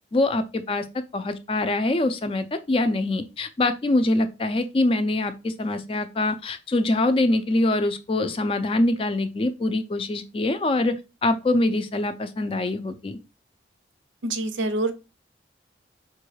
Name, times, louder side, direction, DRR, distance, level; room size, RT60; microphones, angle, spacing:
voice 1, 0.1-0.9 1.1-13.2, left 2 dB, 30° left, 0.3 m, -24 dB
voice 2, 14.2-14.9, right 2 dB, 90° right, 0.6 m, -26 dB
5.2 x 2.3 x 3.2 m
head